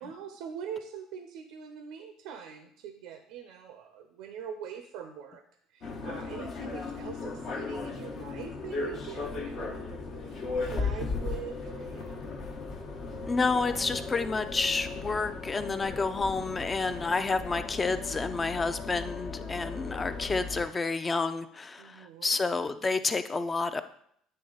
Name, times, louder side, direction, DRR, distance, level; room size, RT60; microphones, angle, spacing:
voice 1, 0.0-5.4 5.7-9.8 10.2-12.3 21.8-22.4, right 7 dB, 80° right, 7 dB, 0.6 m, -43 dB
sound 1, 5.8-20.6, left 4 dB, 60° left, 1.1 m, -36 dB
voice 2, 13.3-23.8, left 3 dB, 25° left, 10 dB, 0.5 m, -29 dB
8.8 x 3.2 x 3.9 m, 0.69 s
supercardioid pair, 90°, 0 cm